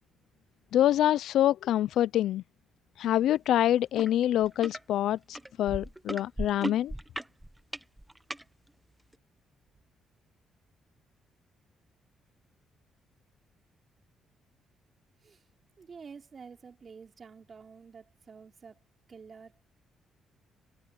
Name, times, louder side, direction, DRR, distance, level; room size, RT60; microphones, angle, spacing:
voice 1, 0.7-2.4 3.0-6.9, left 12 dB, 80° left, 0.5 m, -26 dB
sound 1, 4.0-4.1 4.4-4.8 5.4-8.4 9.1-9.2, right 1 dB, 5° right, 1.3 m, -36 dB
voice 2, 15.8-18.8 19.1-19.6, right 5 dB, 40° right, 3.2 m, -49 dB
cardioid pair, 90°, 0 cm